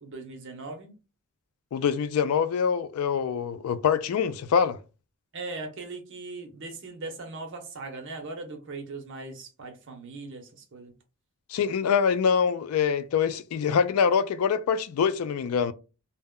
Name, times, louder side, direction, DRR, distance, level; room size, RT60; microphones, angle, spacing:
voice 1, 0.0-0.9 5.3-10.9, right 3 dB, 60° right, 0.7 m, -39 dB
voice 2, 1.7-4.8 11.5-15.7, left 6 dB, 80° left, 0.3 m, -24 dB
2.1 x 2.0 x 3.6 m
head